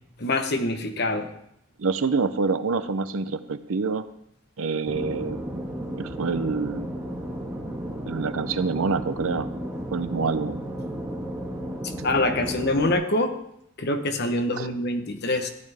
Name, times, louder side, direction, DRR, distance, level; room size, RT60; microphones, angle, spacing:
voice 1, 0.2-1.3 11.8-13.3 13.8-15.5, left 2 dB, 50° left, 7 dB, 1.0 m, -25 dB
voice 2, 1.8-4.1 4.6-5.6 6.0-6.9 8.1-9.5 9.9-10.6 12.0-12.1 14.6-14.7, right 4 dB, 75° right, 12 dB, 0.6 m, -27 dB
sound 1, 4.9-12.9, equal, 10° right, 1.8 m, -33 dB
15.0 x 10.5 x 3.5 m, 0.75 s
head